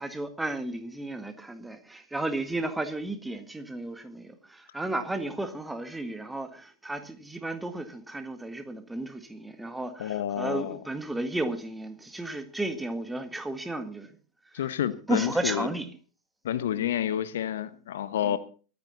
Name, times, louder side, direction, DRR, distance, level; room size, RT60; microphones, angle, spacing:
voice 1, 0.0-14.1 14.5-14.6 15.1-15.9 16.8-17.0 18.2-18.4, right 2 dB, 5° right, 1.8 m, -33 dB
voice 2, 10.0-10.8 14.5-15.7 16.4-18.4, left 10 dB, 60° left, 1.1 m, -29 dB
23.5 x 9.5 x 4.1 m
figure-of-eight pair, 90°, 0 cm